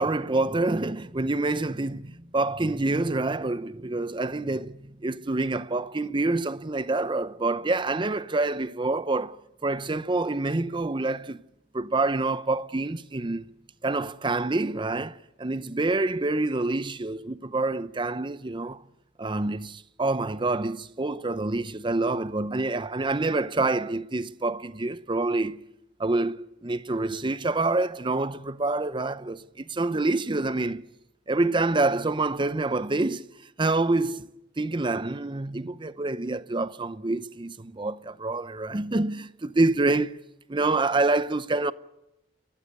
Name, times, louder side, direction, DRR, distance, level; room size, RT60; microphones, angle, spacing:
voice 1, 0.0-11.4 11.7-13.4 13.8-18.8 19.2-25.6 26.0-30.8 31.3-33.3 33.6-34.3 34.6-40.1 40.5-41.7, right 2 dB, 25° right, 0.7 m, -27 dB
29.0 x 14.5 x 8.4 m
head